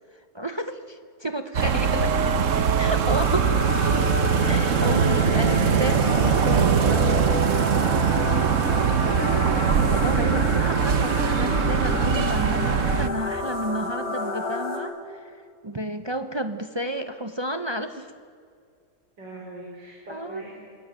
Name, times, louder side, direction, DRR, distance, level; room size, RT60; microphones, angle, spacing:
voice 1, 0.3-2.1 2.8-3.5 4.5-7.3 9.0-15.3 15.6-18.1 20.1-20.4, equal, 30° right, 8 dB, 0.5 m, -31 dB
sound 1, 1.5-13.1, right 7 dB, 50° right, 1.2 m, -22 dB
sound 2, 3.1-14.8, left 3 dB, 60° left, 4.6 m, -31 dB
voice 2, 5.3-5.9 19.2-20.5, right 2 dB, 90° right, -2 dB, 5.3 m, -41 dB
27.5 x 19.5 x 9.0 m, 2.3 s
omnidirectional pair, 1.9 m